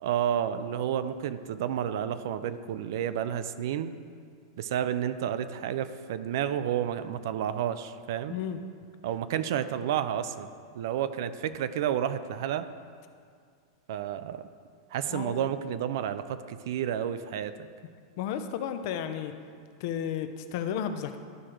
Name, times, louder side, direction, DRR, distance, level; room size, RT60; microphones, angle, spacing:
voice 1, 0.0-3.9 4.6-8.4 9.0-10.5 10.7-12.6 13.9-14.4 14.9-17.5, right 10 dB, 65° right, 12 dB, 0.4 m, -30 dB
voice 2, 15.1-15.4 18.2-19.3 19.8-21.2, left 9 dB, 55° left, 9 dB, 0.5 m, -33 dB
12.0 x 4.8 x 3.0 m, 2.2 s
supercardioid pair, 145°, 2 cm